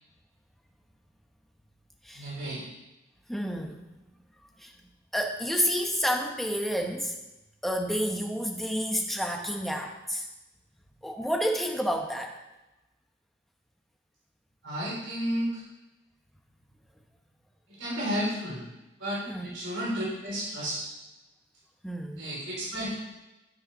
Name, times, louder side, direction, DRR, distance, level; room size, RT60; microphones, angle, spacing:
voice 1, 2.1-2.6 14.6-15.6 17.8-18.7 19.0-20.9 22.2-22.9, equal, 80° right, -6 dB, 4.2 m, -32 dB
voice 2, 3.3-3.8 4.6-4.7 5.1-7.1 7.6-10.2 11.0-12.3 19.3-19.6 21.8-22.2, equal, ahead, 1 dB, 1.1 m, -29 dB
13.5 x 5.6 x 5.6 m, 1.0 s
head